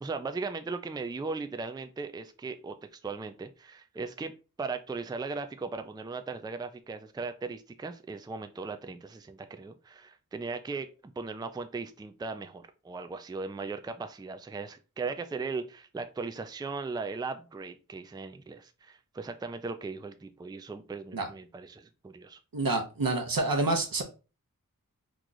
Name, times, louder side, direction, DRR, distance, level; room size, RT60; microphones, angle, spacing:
voice 1, 0.0-10.9 11.2-22.4, right 4 dB, 15° right, 0.4 m, -38 dB
voice 2, 22.5-24.0, right 2 dB, 80° right, 0.9 m, -28 dB
3.0 x 2.4 x 3.8 m
wide cardioid pair, 50°, 34 cm